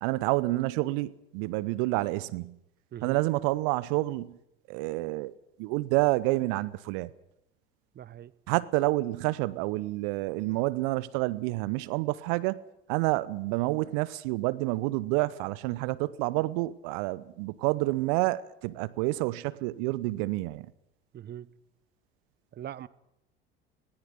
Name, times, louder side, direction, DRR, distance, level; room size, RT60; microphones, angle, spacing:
voice 1, 0.0-2.6 3.0-4.4 4.7-5.3 5.6-7.1 8.5-12.6 12.9-20.7, right 20 dB, 60° right, 0.9 m, -28 dB
voice 2, 7.9-8.3 21.1-21.5 22.5-22.9, right 11 dB, 35° right, 1.0 m, -41 dB
19.5 x 18.0 x 9.9 m
figure-of-eight pair, 65°, 29 cm